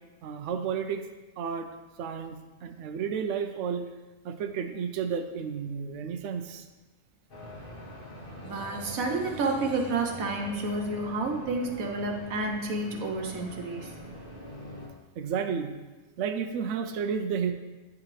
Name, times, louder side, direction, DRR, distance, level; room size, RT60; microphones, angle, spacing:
voice 1, 0.2-1.0 1.4-1.7 2.0-2.3 2.6-3.8 4.2-6.7 15.2-15.7 16.2-17.5, right 7 dB, 70° right, 6 dB, 0.8 m, -31 dB
sound 1, 7.3-14.9, equal, 40° left, 1.6 m, -43 dB
voice 2, 8.4-13.9, right 2 dB, 90° right, 2 dB, 1.4 m, -30 dB
9.6 x 4.8 x 3.2 m, 1.1 s
omnidirectional pair, 1.4 m